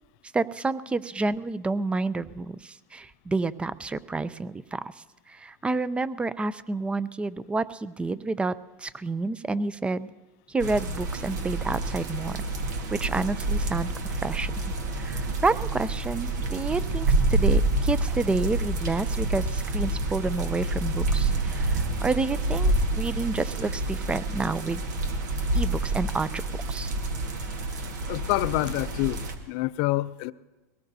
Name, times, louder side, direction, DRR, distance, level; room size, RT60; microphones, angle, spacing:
voice 1, 0.3-10.1 10.5-12.4 12.9-14.5 14.9-24.8 25.5-26.9, right 3 dB, 10° right, 0.5 m, -29 dB
sound 1, 10.6-29.4, right 2 dB, 80° right, 1.6 m, -28 dB
voice 2, 28.1-30.3, left 19 dB, 60° left, 0.5 m, -27 dB
22.5 x 18.0 x 2.7 m
supercardioid pair, 115°, 9 cm